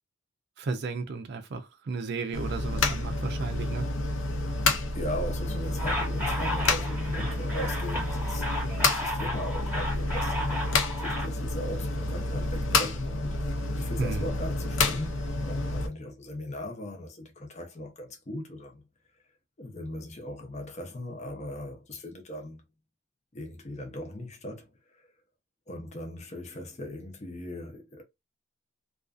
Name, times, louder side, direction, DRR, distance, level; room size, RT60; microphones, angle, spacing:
voice 1, 0.6-3.9 14.0-14.3, right 4 dB, 55° right, 0.4 m, -34 dB
sound 1, 2.3-15.9, left 2 dB, 75° left, 0.6 m, -29 dB
voice 2, 4.9-10.7 11.0-13.4 13.7-18.8 19.6-22.6 23.3-25.1 25.7-28.0, left 1 dB, 35° left, 0.6 m, -38 dB
sound 2, 5.8-11.3, left 1 dB, 10° right, 1.0 m, -34 dB
2.4 x 2.3 x 2.4 m
head